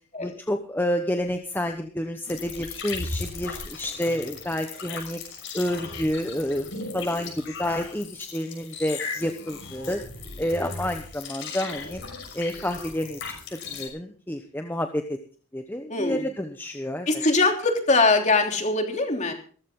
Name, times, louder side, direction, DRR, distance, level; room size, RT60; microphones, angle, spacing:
voice 1, 0.2-5.2 5.5-6.7 6.9-10.0 10.4-12.0 12.3-13.2 13.7-15.2 15.5-17.1, left 1 dB, 10° left, 5 dB, 1.1 m, -29 dB
sound 1, 2.3-13.9, left 4 dB, 55° left, 6.3 m, -37 dB
voice 2, 15.9-16.2 17.1-19.3, left 3 dB, 35° left, 4 dB, 3.2 m, -22 dB
17.5 x 15.0 x 3.9 m, 0.42 s
head